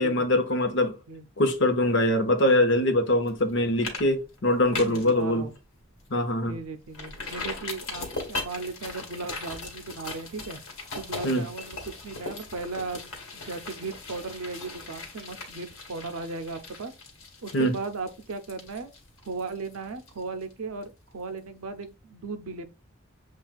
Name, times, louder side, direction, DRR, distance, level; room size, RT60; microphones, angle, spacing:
voice 1, 0.0-0.9 1.4-5.5 6.1-6.6 11.2-11.5 17.5-17.8, left 1 dB, 55° left, 0.8 m, -23 dB
sound 1, 3.3-3.5 3.8-4.0 4.3-5.1 5.5-5.6 6.0-6.1 6.9-20.5 20.8-20.9, left 3 dB, 80° left, 1.5 m, -39 dB
voice 2, 4.6-5.5 6.4-10.6 10.9-11.8 12.0-16.9 17.4-18.9 19.3-22.7, right 3 dB, 85° right, 0.6 m, -36 dB
7.2 x 2.4 x 2.4 m
head